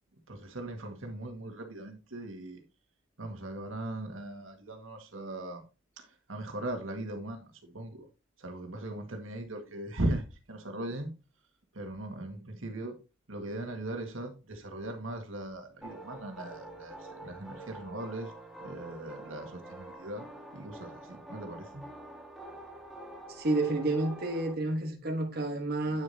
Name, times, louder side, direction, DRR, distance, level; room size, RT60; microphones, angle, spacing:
voice 1, 0.3-2.6 3.2-5.6 6.0-8.1 8.4-11.1 11.7-12.9 13.3-17.0 17.2-18.3 18.6-20.3 20.5-21.8, right 1 dB, 90° right, 1.8 m, -39 dB
sound 1, 15.8-24.5, right 1 dB, ahead, 1.5 m, -47 dB
voice 2, 23.3-26.0, right 2 dB, 50° right, 1.3 m, -30 dB
9.4 x 6.3 x 2.8 m
head